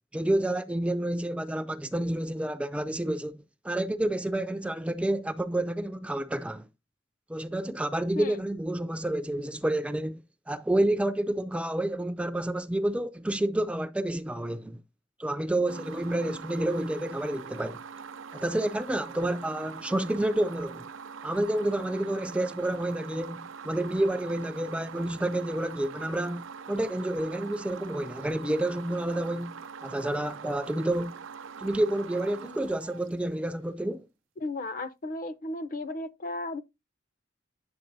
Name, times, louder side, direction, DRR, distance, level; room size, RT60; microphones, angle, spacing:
voice 1, 0.1-6.7 7.3-14.8 15.2-17.8 18.3-20.9 21.2-23.4 23.6-31.2 31.6-34.1, right 1 dB, 5° right, 0.3 m, -29 dB
sound 1, 15.7-33.6, right 6 dB, 80° right, 0.5 m, -43 dB
voice 2, 34.4-36.6, left 2 dB, 45° left, 0.7 m, -34 dB
8.9 x 7.2 x 2.6 m
head